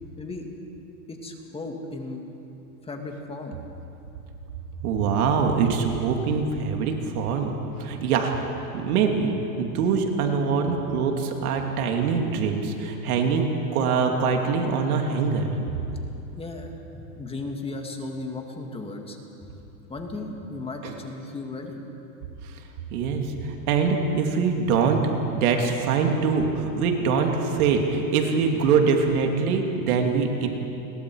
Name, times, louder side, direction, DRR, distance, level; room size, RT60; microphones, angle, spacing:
voice 1, 1.1-2.2 2.8-3.6 16.4-19.5 19.9-21.8 23.0-23.1, left 2 dB, 10° left, 2 dB, 2.1 m, -36 dB
voice 2, 4.8-7.5 7.8-8.3 8.7-15.5 20.8-20.9 22.4-22.5 22.9-30.5, right 5 dB, 70° right, 3 dB, 2.8 m, -23 dB
30.0 x 22.5 x 4.8 m, 2.9 s
supercardioid pair, 140°, 45 cm